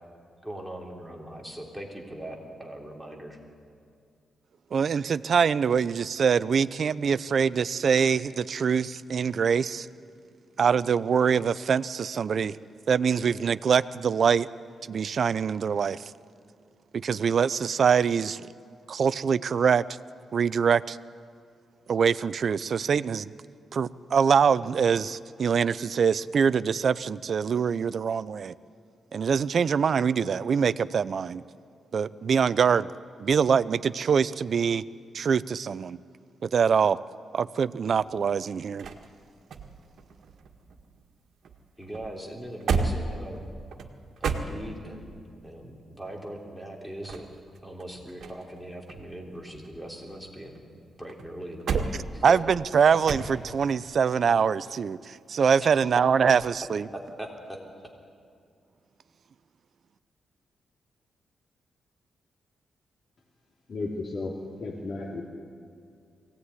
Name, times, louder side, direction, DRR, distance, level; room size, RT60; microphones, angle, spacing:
voice 1, 0.4-3.4 41.8-43.4 44.2-47.2 47.6-50.6 51.0-52.2 55.4-55.6 56.9-57.6, right 1 dB, ahead, 0 dB, 3.3 m, -40 dB
voice 2, 4.7-9.9 10.6-12.6 12.9-14.5 14.9-16.0 16.9-18.4 18.9-19.8 20.3-21.0 21.9-23.3 23.7-28.5 29.1-31.4 31.9-32.9 33.2-34.8 35.1-36.0 36.4-37.0 37.3-38.9 52.2-53.2 53.5-56.8, right 6 dB, 55° right, 17 dB, 0.6 m, -24 dB
sound 1, 38.0-41.2 41.4-45.1 46.8-48.6 48.9-50.6 51.1-53.7 56.3-56.7, right 4 dB, 70° right, 1.8 m, -34 dB
voice 3, 63.7-65.2, left 3 dB, 50° left, -2 dB, 2.8 m, -34 dB
22.5 x 17.5 x 9.8 m, 2.4 s
cardioid pair, 120°, 0 cm